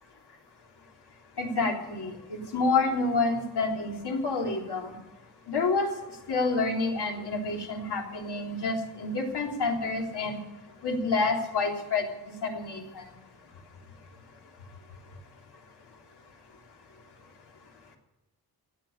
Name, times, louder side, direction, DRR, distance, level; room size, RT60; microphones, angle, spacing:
voice 1, 1.4-4.9 5.5-5.9 6.3-10.4 10.8-13.0, left 3 dB, 85° left, 1 dB, 3.5 m, -28 dB
16.5 x 8.2 x 10.0 m, 1.0 s
wide cardioid pair, 180°, 39 cm